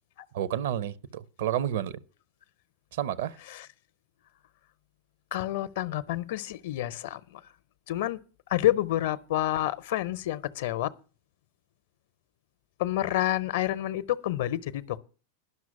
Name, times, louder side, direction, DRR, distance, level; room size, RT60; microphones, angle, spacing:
voice 1, 0.3-2.0 3.0-3.4, right 11 dB, 55° right, 0.6 m, -30 dB
voice 2, 5.3-7.4 7.9-8.2 8.5-10.9 12.8-15.0, left 13 dB, 55° left, 0.6 m, -29 dB
11.0 x 6.2 x 8.4 m
figure-of-eight pair, 90°, 0 cm